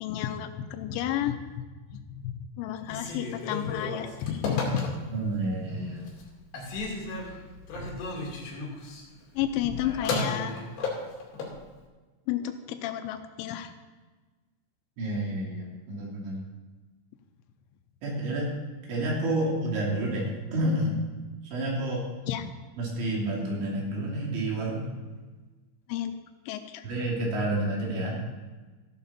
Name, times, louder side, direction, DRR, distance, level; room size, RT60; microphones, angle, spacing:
voice 1, 0.0-1.6 1.9-4.9 9.3-10.5 12.3-13.7 22.3-22.5 25.9-26.1 26.5-26.9, left 10 dB, 85° left, 8 dB, 3.1 m, -31 dB
Telephone, 2.8-5.3 5.8-6.3 6.5-11.6, left 3 dB, 65° left, 4.5 m, -34 dB
voice 2, 5.1-6.1 15.0-16.4 18.0-18.5 18.9-21.0 21.5-22.0 22.8-24.9 26.8-28.2, right 1 dB, 70° right, -3 dB, 5.1 m, -29 dB
14.5 x 11.0 x 4.2 m, 1.3 s
omnidirectional pair, 5.5 m